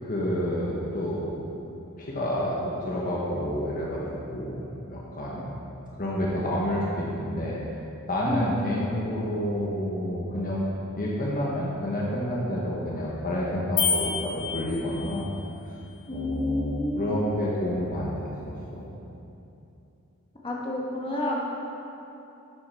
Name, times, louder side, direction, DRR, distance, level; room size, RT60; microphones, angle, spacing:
voice 1, 0.0-1.4 2.0-5.5 6.0-7.6 8.1-15.2 16.1-18.1 18.4-18.8, equal, 40° left, -5 dB, 1.3 m, -29 dB
sound 1, 13.8-15.3, left 6 dB, 60° left, 2.1 m, -28 dB
voice 2, 16.1-17.1 20.4-21.4, left 1 dB, 25° left, -4 dB, 1.5 m, -30 dB
11.5 x 8.4 x 4.4 m, 2.8 s
head